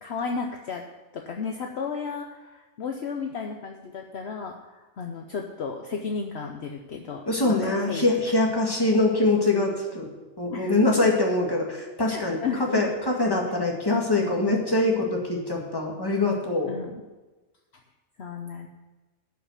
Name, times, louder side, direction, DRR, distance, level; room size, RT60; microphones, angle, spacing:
voice 1, 0.0-0.8 1.1-8.0 8.4-8.5 10.5-10.8 12.1-12.9 16.7-17.0 18.2-18.7, left 5 dB, 60° left, 3 dB, 1.0 m, -33 dB
voice 2, 7.3-10.1 10.4-12.4 12.7-16.7, left 2 dB, 20° left, -1 dB, 2.0 m, -23 dB
11.5 x 5.7 x 8.2 m, 1.2 s
omnidirectional pair, 1.3 m